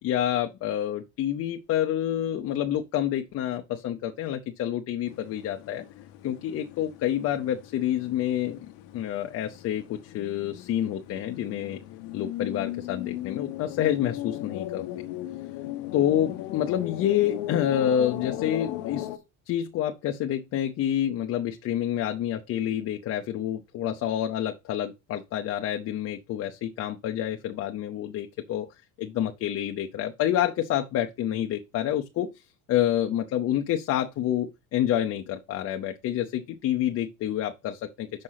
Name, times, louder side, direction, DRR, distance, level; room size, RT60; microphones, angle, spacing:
voice 1, 0.0-5.8 6.2-8.7 8.9-11.8 12.1-14.8 15.9-19.1 19.5-28.7 29.0-32.4 32.7-38.1, left 11 dB, 40° left, 0.7 m, -28 dB
sound 1, 5.1-19.2, left 14 dB, 75° left, 1.1 m, -37 dB
6.4 x 5.2 x 5.6 m
cardioid pair, 155°, 39 cm